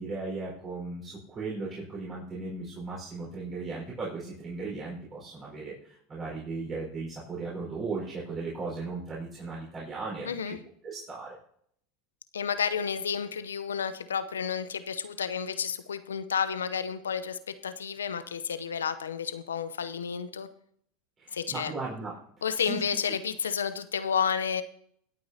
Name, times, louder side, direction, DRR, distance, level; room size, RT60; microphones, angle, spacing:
voice 1, 0.0-10.5 10.8-11.3 21.2-22.1 22.7-22.8, right 3 dB, 30° right, -5 dB, 4.8 m, -37 dB
voice 2, 10.2-10.6 12.3-20.5 21.3-21.7 22.4-24.6, left 7 dB, 85° left, 12 dB, 0.7 m, -31 dB
25.0 x 8.7 x 2.8 m, 0.67 s
hypercardioid pair, 90°, 0 cm